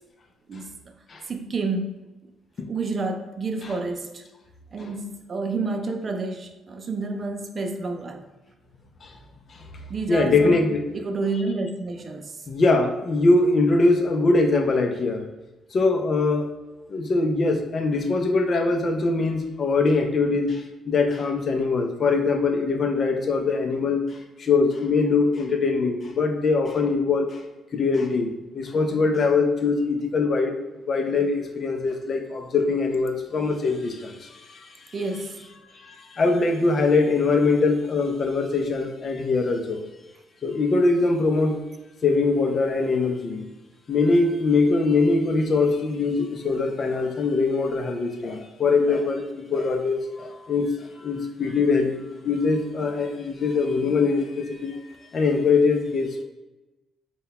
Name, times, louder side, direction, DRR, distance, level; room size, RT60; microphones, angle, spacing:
voice 1, 1.3-2.1 2.7-4.2 4.7-8.2 9.9-10.6 10.9-12.3 34.9-35.4, right 3 dB, 40° right, 6 dB, 0.4 m, -29 dB
voice 2, 10.1-11.0 12.5-15.2 15.7-16.5 16.9-27.4 27.7-30.5 30.9-34.7 35.8-39.8 40.4-41.6 42.0-43.4 43.9-49.2 49.5-54.8 55.1-56.2, left 3 dB, 45° left, 5 dB, 0.5 m, -22 dB
3.8 x 2.3 x 4.1 m, 1.1 s
cardioid pair, 90°, 0 cm